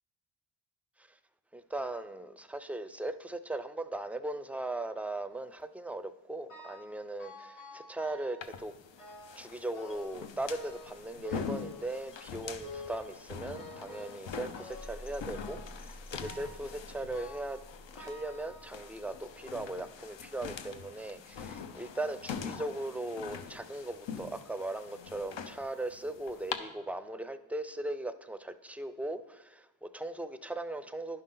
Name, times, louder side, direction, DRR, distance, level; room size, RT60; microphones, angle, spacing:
voice 1, 1.5-8.7 9.4-17.6 17.9-31.2, right 2 dB, 5° right, 11 dB, 0.5 m, -38 dB
sound 1, 6.5-6.9 7.2-8.5 9.0-9.4 9.7-10.2 10.5-12.2 12.6-13.1 13.5-14.2 14.6-15.0 15.3-15.8 16.2-16.7 17.1-17.6 18.0-19.0 19.7-19.8 20.6-20.7 21.1-21.2, left 3 dB, 85° left, 2.4 m, -48 dB
sound 2, 8.4-26.6, left 6 dB, 65° left, 0.9 m, -44 dB
sound 3, 9.9-21.9, left 1 dB, 25° left, 0.9 m, -53 dB
10.5 x 5.5 x 3.8 m, 0.93 s
cardioid pair, 55°, 49 cm